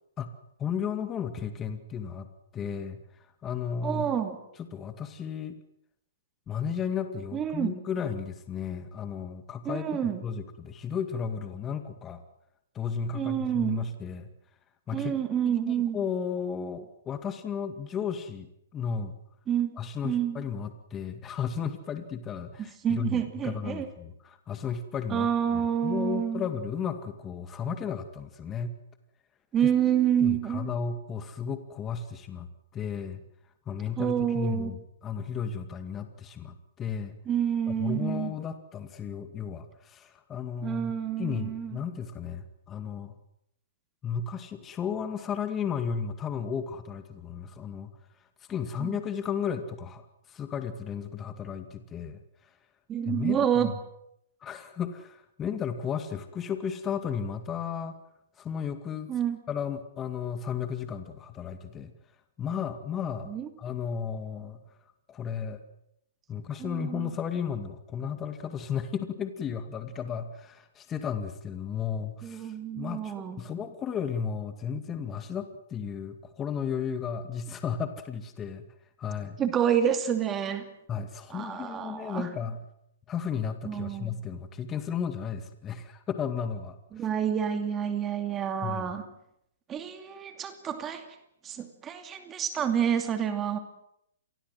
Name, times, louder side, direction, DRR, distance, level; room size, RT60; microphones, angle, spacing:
voice 1, 0.6-2.3 2.5-3.0 3.4-4.1 4.7-5.6 6.5-12.2 12.7-14.3 14.9-15.1 15.7-18.5 18.7-19.2 19.8-28.7 30.2-32.5 32.7-33.2 33.7-37.2 37.7-40.9 41.2-43.2 44.0-47.9 48.5-52.2 53.1-53.8 54.4-57.9 58.4-59.1 59.5-61.9 62.4-63.3 63.6-64.6 65.1-65.6 66.3-78.7 79.0-79.4 80.9-82.6 83.1-87.0 88.6-88.9, left 7 dB, 20° left, 9 dB, 2.1 m, -34 dB
voice 2, 3.8-4.4 7.3-7.8 9.6-10.2 13.1-13.8 14.9-16.0 19.5-19.8 20.0-20.4 22.6-23.9 25.1-26.4 29.5-30.7 34.0-34.7 37.3-38.3 40.6-41.8 48.8-49.0 52.9-53.7 59.1-59.4 63.2-63.5 66.6-67.1 72.2-73.4 79.4-80.7 81.3-82.3 83.6-84.2 86.9-89.1 89.7-91.1 91.4-93.6, right 9 dB, 20° right, 8 dB, 2.6 m, -28 dB
27.0 x 20.5 x 7.7 m, 0.76 s
figure-of-eight pair, 120°, 0 cm